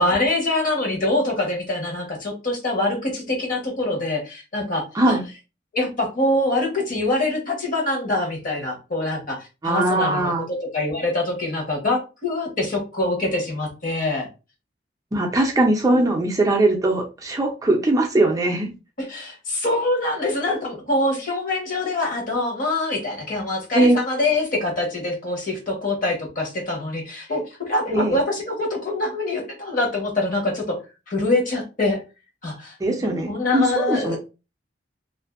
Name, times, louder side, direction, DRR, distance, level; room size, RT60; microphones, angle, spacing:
voice 1, 0.0-5.2 5.7-10.3 10.7-14.3 19.0-30.8 31.1-32.0 32.4-32.8 33.0-34.2, left 2 dB, 50° left, 0 dB, 1.1 m, -24 dB
voice 2, 9.6-10.5 15.1-18.7 23.7-24.0 27.9-28.2 32.8-34.2, right 2 dB, 20° right, 2 dB, 0.4 m, -20 dB
2.5 x 2.5 x 2.4 m, 0.29 s
head